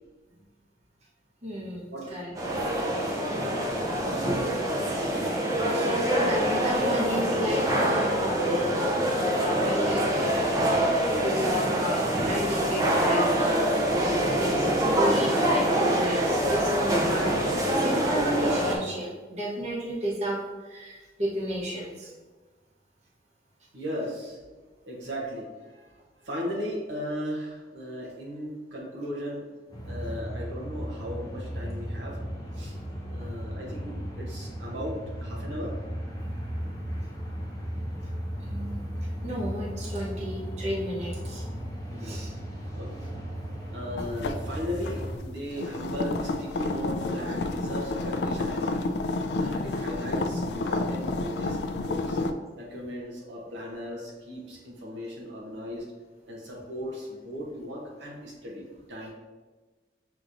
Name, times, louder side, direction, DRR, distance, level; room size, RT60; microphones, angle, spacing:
voice 1, 1.4-2.3 5.1-5.3 5.7-9.0 9.4-10.3 10.6-10.9 11.2-13.7 14.0-22.1 30.0-30.2 38.4-38.8 39.2-41.4 42.0-42.3, right 1 dB, 40° right, -5 dB, 1.0 m, -33 dB
sound 1, 2.3-18.8, equal, 20° right, 0.6 m, -25 dB
voice 2, 23.7-24.4 24.9-29.5 29.9-32.2 32.5-32.8 33.1-35.8 41.9-42.2 42.7-43.3 43.7-48.9 49.4-52.2 52.5-55.9 56.3-59.1, equal, 85° right, -3 dB, 0.9 m, -37 dB
sound 2, 29.7-45.2, equal, 20° left, 0.7 m, -35 dB
sound 3, 44.0-52.3, left 2 dB, 65° left, 0.3 m, -30 dB
6.3 x 2.9 x 2.6 m, 1.3 s
head